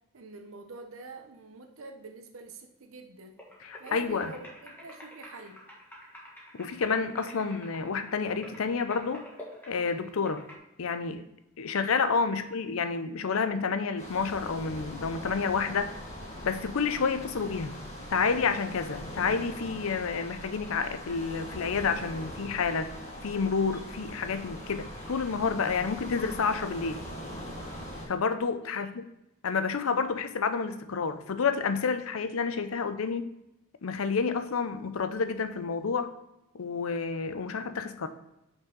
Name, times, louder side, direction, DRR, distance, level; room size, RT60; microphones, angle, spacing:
voice 1, 0.1-3.4 3.8-5.6 28.6-28.9, right 3 dB, 65° right, 5 dB, 0.9 m, -46 dB
sound 1, 3.4-10.6, equal, 10° left, 1.5 m, -48 dB
voice 2, 3.6-4.3 6.5-9.2 9.7-10.4 10.8-11.2 11.6-15.9 16.4-17.7 18.1-22.9 23.2-27.0 28.1-29.0 29.4-33.3 33.8-36.1 36.5-38.1, left 5 dB, 70° left, 11 dB, 0.5 m, -29 dB
sound 2, 14.0-28.1, equal, 30° left, 2.1 m, -41 dB
5.9 x 5.5 x 3.8 m, 0.90 s
head